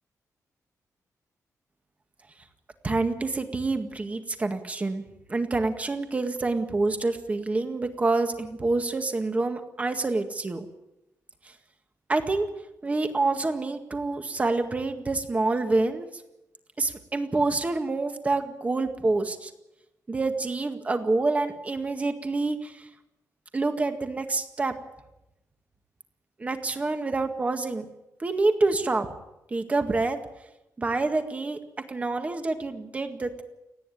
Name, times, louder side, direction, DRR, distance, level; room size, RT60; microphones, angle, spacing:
voice 1, 2.8-5.0 5.3-10.7 12.1-12.5 12.8-16.2 16.8-19.5 20.1-22.9 23.5-24.7 26.4-27.9 28.2-29.1 29.5-30.2 30.8-31.6 31.9-33.4, right 3 dB, 25° right, 6 dB, 1.9 m, -27 dB
29.5 x 10.0 x 10.0 m, 0.92 s
wide cardioid pair, 155°, 6 cm